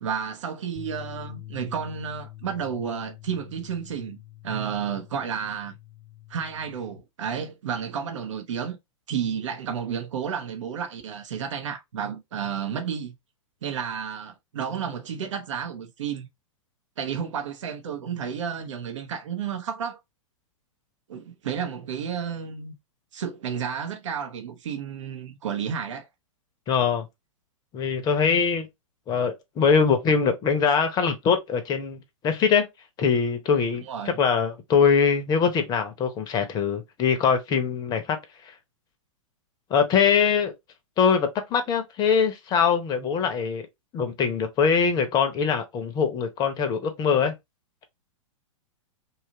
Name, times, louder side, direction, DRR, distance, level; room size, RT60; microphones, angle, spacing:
voice 1, 0.0-4.2 4.4-5.8 6.3-8.8 9.1-13.1 13.6-16.3 17.0-20.0 21.1-22.7 23.1-26.1 33.9-34.2, right 7 dB, 65° right, 0.7 m, -31 dB
sound 1, 0.8-7.0, left 15 dB, 15° right, 0.8 m, -45 dB
voice 2, 26.7-27.1 27.7-28.7 29.1-32.7 33.0-38.2 39.7-40.5 41.0-43.7 43.9-47.3, left 6 dB, 25° left, 0.6 m, -23 dB
2.8 x 2.4 x 2.7 m
figure-of-eight pair, 105°, 17 cm